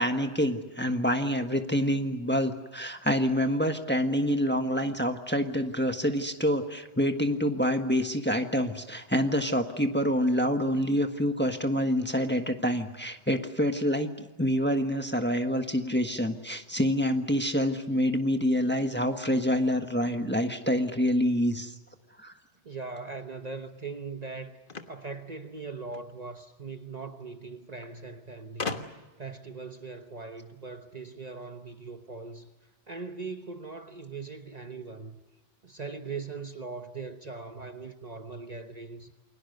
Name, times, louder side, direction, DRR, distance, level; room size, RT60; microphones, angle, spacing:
voice 1, 0.0-21.7 22.2-22.3, equal, 10° left, 1.4 m, -27 dB
voice 2, 22.6-24.6 24.9-32.5 32.9-35.2 35.6-39.1, right 4 dB, 40° right, 1.1 m, -40 dB
sound 1, 24.7-26.1 27.2-27.3 27.5-27.6 28.6-29.2, left 4 dB, 50° left, 1.5 m, -37 dB
29.0 x 22.0 x 6.7 m
omnidirectional pair, 1.1 m